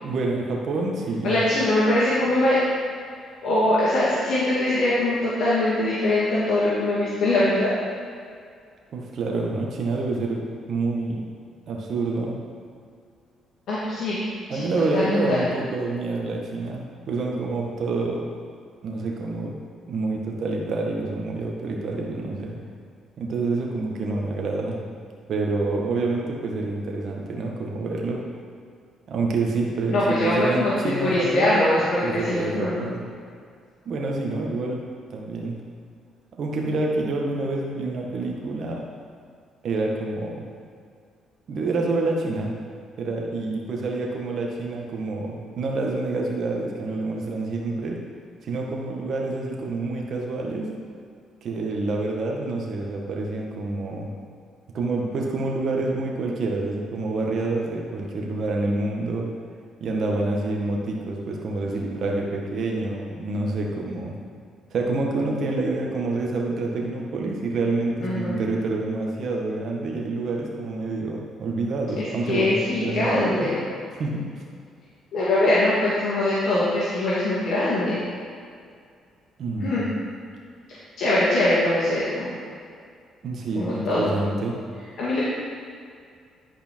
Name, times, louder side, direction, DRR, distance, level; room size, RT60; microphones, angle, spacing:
voice 1, 0.0-1.3 8.9-11.2 11.7-12.4 14.5-18.3 18.8-19.6 19.9-22.6 23.2-24.8 25.3-28.2 29.1-31.6 32.0-33.0 33.8-34.8 35.1-35.6 36.4-38.8 39.6-40.5 41.5-42.5 43.0-48.0 48.4-50.7 51.4-54.1 54.7-59.3 59.8-64.1 64.7-73.5 74.0-74.4 79.4-79.9 83.2-84.6, right 3 dB, 60° right, -1 dB, 1.6 m, -27 dB
voice 2, 1.2-2.6 3.4-7.7 13.7-14.2 14.5-14.7 14.9-15.4 29.9-32.7 68.0-68.4 72.0-73.6 75.1-78.0 79.6-79.9 80.7-82.4 83.5-84.2 85.0-85.2, left 1 dB, 70° left, -9 dB, 2.2 m, -22 dB
11.0 x 5.1 x 4.6 m, 2.2 s
cardioid pair, 80°, 0 cm